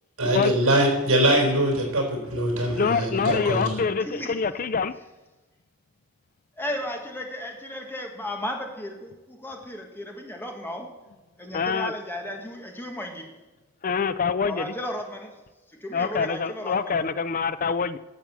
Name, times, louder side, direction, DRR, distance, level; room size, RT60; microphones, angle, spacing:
voice 1, 0.2-3.8, right 1 dB, 75° right, 1 dB, 4.4 m, -22 dB
voice 2, 2.8-4.9 11.5-11.9 13.8-14.7 15.9-18.0, left 5 dB, 40° left, 14 dB, 0.4 m, -25 dB
voice 3, 4.0-4.3 6.6-10.9 11.4-13.3 14.4-15.4 15.8-17.0, left 1 dB, 10° left, 2 dB, 1.5 m, -34 dB
11.5 x 7.5 x 6.9 m, 1.1 s
head